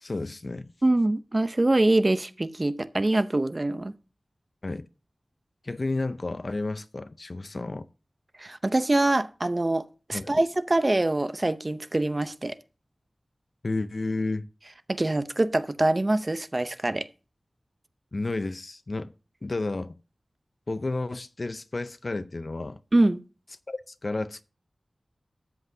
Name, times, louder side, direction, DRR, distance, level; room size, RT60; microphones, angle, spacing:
voice 1, 0.0-0.7 4.6-4.9 5.6-7.9 10.1-10.4 13.6-14.5 18.1-19.1 19.4-20.0 20.7-22.8 23.7-24.4, left 2 dB, 50° left, 0.5 m, -31 dB
voice 2, 0.8-3.9 8.4-12.5 14.9-17.1 22.9-23.2, right 2 dB, 35° right, 0.6 m, -24 dB
13.0 x 7.9 x 2.7 m
wide cardioid pair, 80°, 0 cm